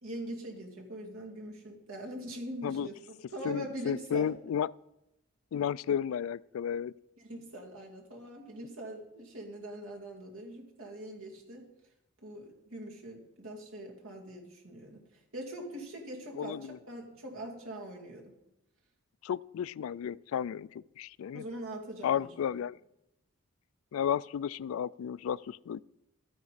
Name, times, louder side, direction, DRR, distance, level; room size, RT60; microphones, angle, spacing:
voice 1, 0.0-3.0 3.3-4.3 7.2-11.7 12.2-15.0 15.3-18.3 21.3-22.3, right 1 dB, 90° right, 2.5 m, -42 dB
voice 2, 3.4-4.7 5.5-6.9 16.3-16.8 19.2-21.4 22.0-22.8 23.9-25.8, left 8 dB, 85° left, 0.3 m, -33 dB
13.0 x 9.4 x 4.1 m
head